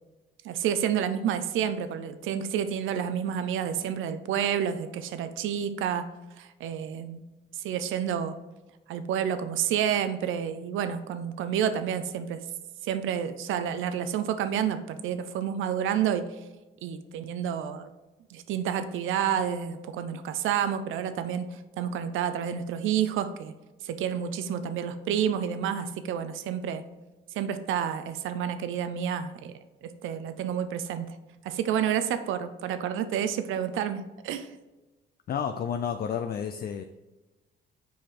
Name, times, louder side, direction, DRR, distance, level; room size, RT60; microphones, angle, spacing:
voice 1, 0.4-6.1 6.4-7.2 7.6-8.4 8.9-12.4 12.8-16.3 16.8-17.9 18.3-23.5 23.8-26.8 27.3-31.2 31.4-34.5, right 9 dB, 85° right, 10 dB, 0.6 m, -29 dB
voice 2, 35.3-36.8, left 7 dB, 50° left, 7 dB, 0.5 m, -31 dB
7.0 x 4.8 x 3.8 m, 1.1 s
cardioid pair, 90°, 20 cm